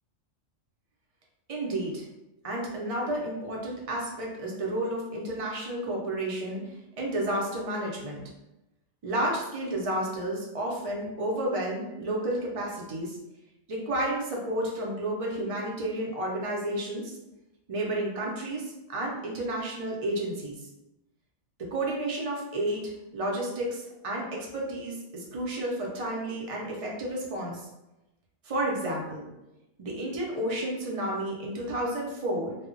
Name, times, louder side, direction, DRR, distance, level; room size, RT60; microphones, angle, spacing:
voice 1, 1.5-2.1 2.4-8.2 9.0-13.2 13.7-17.2 17.7-20.6 21.6-27.7 28.4-29.3 29.8-32.6, right 1 dB, 55° right, -3 dB, 0.4 m, -31 dB
2.2 x 2.0 x 3.7 m, 0.96 s
omnidirectional pair, 1.4 m